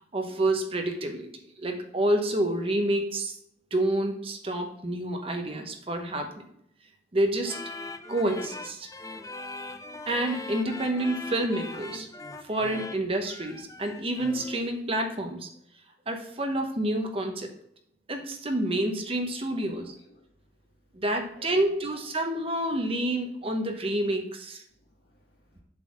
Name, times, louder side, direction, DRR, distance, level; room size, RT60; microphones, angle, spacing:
voice 1, 0.1-1.3 1.6-3.4 3.7-6.5 7.1-7.6 8.1-8.9 10.1-12.1 12.4-15.5 16.1-17.5 18.1-19.9 20.9-24.6, right 1 dB, 30° right, 4 dB, 0.9 m, -28 dB
sound 1, 7.4-14.7, left 2 dB, 20° left, 0.5 m, -40 dB
voice 2, 19.5-20.2 21.3-21.7 23.4-23.5 24.7-25.6, equal, 65° left, -1 dB, 2.5 m, -55 dB
7.6 x 4.0 x 6.3 m, 0.70 s
head